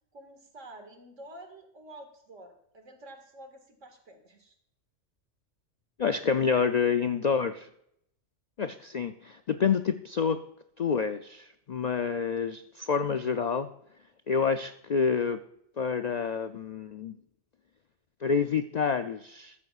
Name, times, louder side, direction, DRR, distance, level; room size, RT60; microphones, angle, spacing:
voice 1, 0.1-4.6, right 1 dB, 80° right, 5 dB, 2.2 m, -49 dB
voice 2, 6.0-7.7 8.6-10.4 10.8-13.7 14.3-15.4 15.8-17.2 18.2-19.5, left 6 dB, 65° left, 9 dB, 0.4 m, -28 dB
14.0 x 12.5 x 2.4 m, 0.75 s
omnidirectional pair, 1.3 m